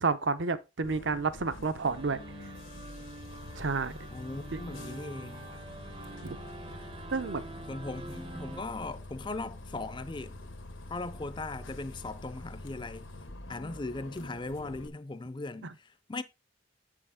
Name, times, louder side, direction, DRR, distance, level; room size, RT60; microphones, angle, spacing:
voice 1, 0.0-2.2 3.6-4.1 4.5-4.6 6.2-6.4 7.1-7.4, right 4 dB, 70° right, 0.7 m, -30 dB
Bus, 0.8-14.9, left 2 dB, 90° left, 1.3 m, -46 dB
sound 1, 1.8-8.6, right 2 dB, 25° right, 0.6 m, -46 dB
voice 2, 4.1-5.5 7.7-10.4 10.9-13.1 13.5-16.2, left 2 dB, 25° left, 0.4 m, -39 dB
7.8 x 6.3 x 3.6 m
head